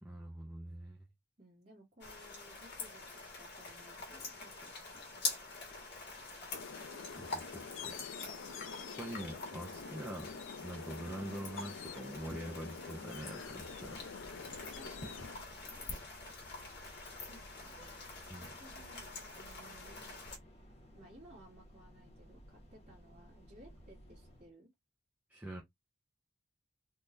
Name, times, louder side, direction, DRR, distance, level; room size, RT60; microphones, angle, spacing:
voice 1, 0.0-1.0 6.1-6.2 7.2-8.0 9.0-10.3 10.6-14.3 15.9-16.0 18.3-18.5 25.3-25.6, right 1 dB, 10° right, 0.7 m, -45 dB
voice 2, 1.4-5.1 14.7-16.0 17.3-18.1 18.4-20.2 20.9-24.7, right 1 dB, 35° right, 1.9 m, -59 dB
sound 1, 2.0-20.4, left 3 dB, 60° left, 1.5 m, -46 dB
sound 2, 6.5-15.4, left 5 dB, 90° left, 0.6 m, -47 dB
sound 3, 13.3-24.5, equal, 35° left, 1.2 m, -57 dB
3.6 x 3.0 x 2.5 m
head